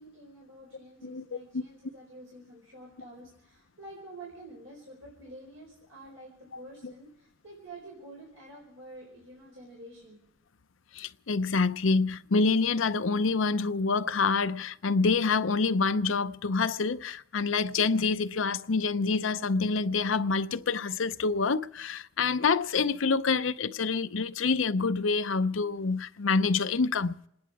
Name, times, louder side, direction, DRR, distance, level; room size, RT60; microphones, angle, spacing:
voice 1, 0.0-10.2, right 1 dB, 85° right, 4.7 m, -48 dB
voice 2, 1.0-1.6 6.5-6.9 10.9-27.2, left 4 dB, 85° left, 0.7 m, -27 dB
28.0 x 10.5 x 4.8 m
head